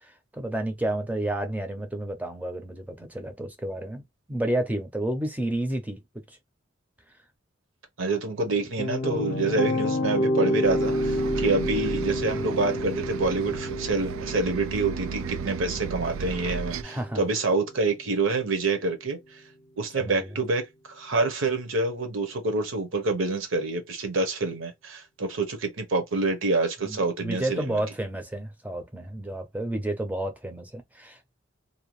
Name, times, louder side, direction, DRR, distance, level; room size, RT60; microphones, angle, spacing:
voice 1, 0.0-4.0 4.3-6.0 16.8-17.3 19.9-20.3 26.8-31.2, right 1 dB, 10° right, 0.5 m, -31 dB
voice 2, 8.0-19.2 19.8-27.8, right 3 dB, 70° right, 0.8 m, -27 dB
sound 1, 8.4-17.5, left 1 dB, 50° left, 0.5 m, -29 dB
Bus, 10.6-16.8, right 6 dB, 90° right, 0.3 m, -34 dB
2.7 x 2.2 x 3.0 m
head